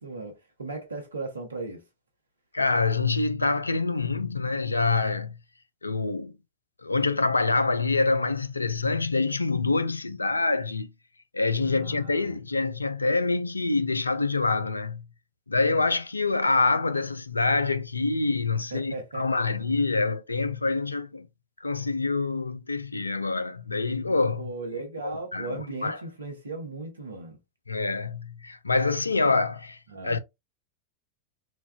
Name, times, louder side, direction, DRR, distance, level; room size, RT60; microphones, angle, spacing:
voice 1, 0.0-1.8 11.6-12.4 18.7-19.6 24.4-27.4 29.9-30.2, right 3 dB, 75° right, 0.9 m, -37 dB
voice 2, 2.5-5.4 5.8-6.3 6.8-10.9 11.3-15.0 15.5-21.3 21.6-24.5 25.0-26.0 27.7-29.8 30.0-30.2, left 3 dB, 80° left, 0.3 m, -26 dB
3.9 x 2.2 x 2.2 m
figure-of-eight pair, 90°, 0 cm